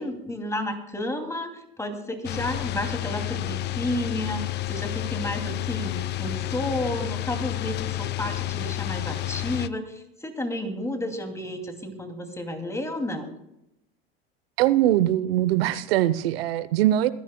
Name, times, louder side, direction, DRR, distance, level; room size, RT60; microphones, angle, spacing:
voice 1, 0.0-13.3, left 1 dB, 10° left, 5 dB, 2.5 m, -31 dB
sound 1, 2.2-9.7, left 15 dB, 35° left, 0.5 m, -30 dB
voice 2, 14.6-17.1, right 13 dB, 75° right, 16 dB, 0.8 m, -22 dB
24.5 x 10.5 x 2.2 m, 0.82 s
hypercardioid pair, 95°, 30 cm